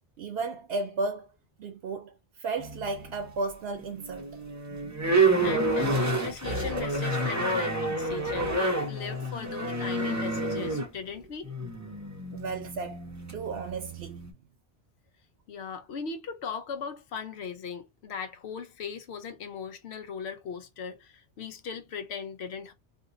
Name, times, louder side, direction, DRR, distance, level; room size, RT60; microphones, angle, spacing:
voice 1, 0.2-1.3 1.6-4.4 12.3-14.3, right 3 dB, 70° right, 0.8 m, -34 dB
sound 1, 2.6-3.3 3.8-14.3, right 2 dB, 20° right, 0.5 m, -29 dB
voice 2, 5.4-11.5 15.5-22.7, left 6 dB, 75° left, 0.9 m, -38 dB
2.7 x 2.5 x 3.7 m
omnidirectional pair, 1.1 m